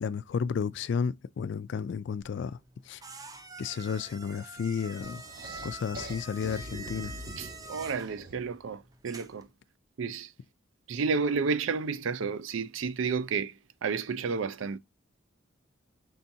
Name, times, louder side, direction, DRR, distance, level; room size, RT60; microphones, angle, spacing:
voice 1, 0.0-2.6 2.9-3.0 3.6-5.2 5.6-7.1, left 6 dB, 65° left, 0.3 m, -32 dB
sound 1, 2.2-9.5, right 3 dB, 20° right, 0.5 m, -46 dB
Greaves Flam, 5.0-8.6, equal, 50° right, 1.1 m, -44 dB
voice 2, 7.4-9.5 10.0-10.3 10.9-13.5 13.8-14.8, right 5 dB, 85° right, 0.5 m, -31 dB
5.5 x 3.5 x 2.7 m
head